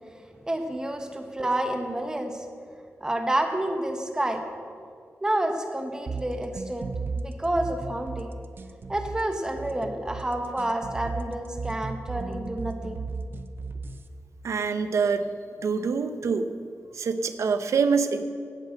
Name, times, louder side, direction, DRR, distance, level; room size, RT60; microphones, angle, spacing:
voice 1, 0.4-2.4 3.0-4.5 5.2-6.9 7.2-8.3 8.9-13.0, right 1 dB, 15° right, 4 dB, 1.3 m, -29 dB
sound 1, 6.1-14.1, right 4 dB, 45° right, 0.7 m, -35 dB
voice 2, 14.4-15.3 15.6-16.5 16.9-18.2, right 5 dB, 80° right, 9 dB, 0.9 m, -25 dB
17.0 x 8.3 x 6.6 m, 2.2 s
wide cardioid pair, 180°, 5 cm